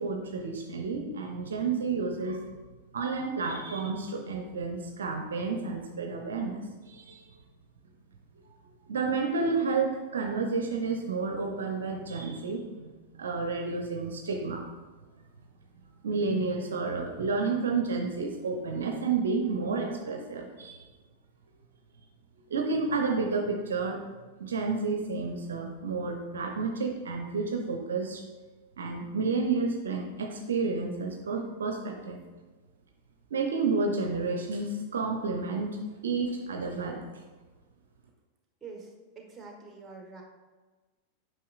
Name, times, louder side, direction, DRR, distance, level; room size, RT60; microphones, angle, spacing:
voice 1, 0.0-2.5 2.9-7.3 8.9-14.7 16.0-20.8 22.5-24.0 24.4-28.2 28.8-32.2 33.3-37.1, right 4 dB, 65° right, 4 dB, 0.6 m, -30 dB
voice 2, 38.6-40.2, right 4 dB, 15° right, 1 dB, 1.3 m, -46 dB
8.3 x 5.6 x 2.4 m, 1.3 s
figure-of-eight pair, 90°, 0 cm